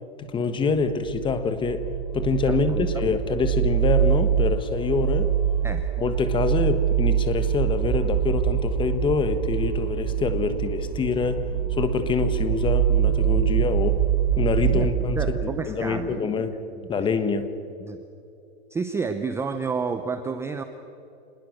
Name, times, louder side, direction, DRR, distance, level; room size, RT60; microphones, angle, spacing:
voice 1, 0.2-1.9 2.1-5.3 6.0-14.0 14.4-16.6 16.9-17.5, left 4 dB, 15° left, 10 dB, 1.4 m, -25 dB
sound 1, 0.7-15.5, right 10 dB, 50° right, 3.2 m, -24 dB
voice 2, 2.5-3.1 5.6-5.8 14.7-14.9 15.1-17.1 17.8-18.0 18.7-20.6, right 5 dB, 10° right, 8 dB, 0.7 m, -31 dB
26.5 x 21.0 x 6.6 m, 2.9 s
hypercardioid pair, 145°, 32 cm